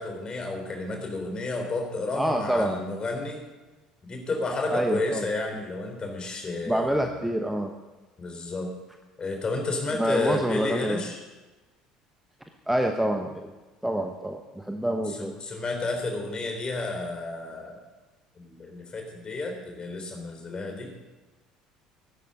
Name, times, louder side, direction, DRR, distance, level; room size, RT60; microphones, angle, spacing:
voice 1, 0.0-3.4 4.0-7.3 8.2-8.7 9.2-11.2 15.1-17.8 18.4-20.9, left 3 dB, 30° left, 3 dB, 3.6 m, -31 dB
voice 2, 2.2-2.8 4.7-5.3 6.7-7.7 10.0-11.0 12.7-13.5 13.8-15.3, right 1 dB, 5° right, 4 dB, 1.1 m, -27 dB
15.0 x 12.0 x 5.2 m, 1.2 s
figure-of-eight pair, 60°, 3 cm